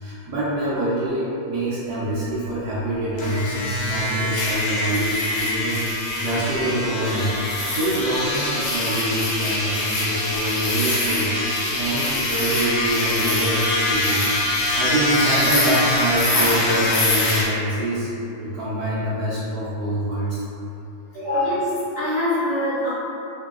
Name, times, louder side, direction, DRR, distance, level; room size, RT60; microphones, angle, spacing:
voice 1, 0.0-7.3 7.7-11.3 11.6-14.2 14.5-18.1 18.4-20.4 21.1-21.3, right 1 dB, 65° right, -11 dB, 1.1 m, -25 dB
sound 1, 3.2-17.4, left 2 dB, 75° left, 1.4 m, -24 dB
voice 2, 21.1-21.7 21.9-22.9, left 1 dB, 45° left, -13 dB, 1.3 m, -23 dB
3.9 x 2.7 x 2.4 m, 2.8 s
omnidirectional pair, 2.2 m